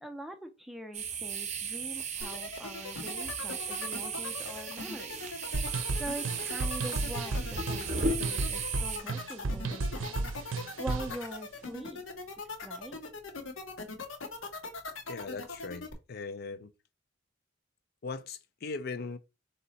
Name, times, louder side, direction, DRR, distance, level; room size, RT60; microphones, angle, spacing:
voice 1, 0.0-12.0 12.6-13.0, right 1 dB, ahead, 0.5 m, -43 dB
sound 1, 0.9-9.0, right 4 dB, 35° right, 0.7 m, -36 dB
sound 2, 2.2-15.9, left 4 dB, 75° left, 0.9 m, -40 dB
sound 3, 5.5-11.2, right 3 dB, 80° right, 0.6 m, -34 dB
voice 2, 15.1-16.7 18.0-19.2, left 4 dB, 50° left, 0.4 m, -39 dB
4.1 x 2.8 x 4.0 m
head